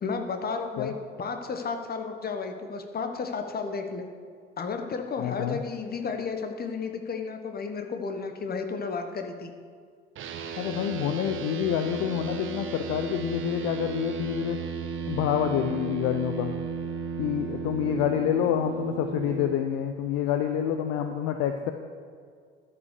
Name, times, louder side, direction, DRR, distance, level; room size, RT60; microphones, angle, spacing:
voice 1, 0.0-4.1 4.6-9.5, left 5 dB, 30° left, 6 dB, 1.3 m, -33 dB
voice 2, 5.2-5.6 10.6-14.6 15.1-16.5 17.2-21.7, left 10 dB, 50° left, 7 dB, 0.7 m, -27 dB
sound 1, 10.2-19.5, right 5 dB, 40° right, 1.1 m, -34 dB
12.0 x 5.6 x 6.7 m, 2.1 s
figure-of-eight pair, 60°, 30 cm